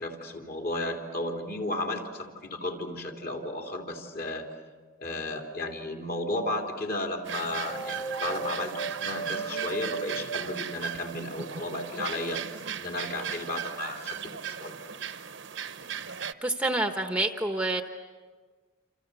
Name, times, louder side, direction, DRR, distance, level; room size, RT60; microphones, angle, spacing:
voice 1, 0.0-4.5 5.0-14.2 14.6-14.7, left 1 dB, 45° left, 2 dB, 3.3 m, -34 dB
sound 1, 5.5-6.2 7.7-11.5, right 4 dB, 20° left, 0.7 m, -38 dB
sound 2, 7.2-16.3, right 7 dB, 60° right, 0.9 m, -37 dB
voice 2, 16.4-17.8, right 2 dB, 5° right, 5 dB, 1.0 m, -27 dB
28.5 x 28.0 x 6.9 m, 1.4 s
head